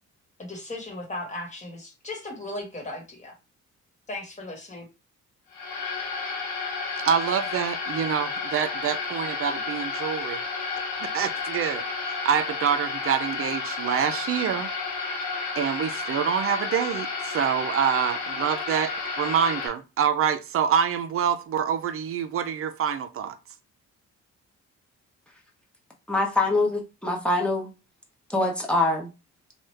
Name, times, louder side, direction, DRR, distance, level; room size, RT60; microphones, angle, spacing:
voice 1, 0.4-3.3 4.1-4.9, left 2 dB, 25° left, 1.3 m, -36 dB
sound 1, 5.5-19.7, left 4 dB, 85° left, 1.2 m, -31 dB
voice 2, 7.0-10.4 11.0-14.7 15.6-23.4, right 8 dB, 45° right, 0.5 m, -26 dB
voice 3, 26.1-27.7 28.3-29.1, left 2 dB, 5° left, 1.0 m, -24 dB
2.9 x 2.3 x 3.2 m
cardioid pair, 90°, 30 cm